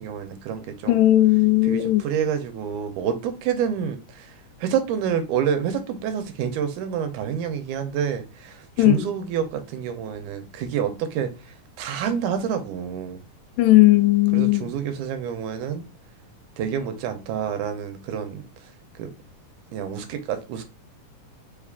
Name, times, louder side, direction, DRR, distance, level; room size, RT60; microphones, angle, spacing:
voice 1, 0.0-1.0 1.6-4.3 4.6-11.3 11.8-13.2 14.3-15.9 16.6-18.4 19.0-19.1 19.7-20.6, right 8 dB, 85° right, 2.1 m, -28 dB
voice 2, 0.9-2.0 8.8-9.1 13.6-14.7, left 16 dB, 85° left, 2.1 m, -17 dB
5.0 x 2.4 x 3.5 m
omnidirectional pair, 3.6 m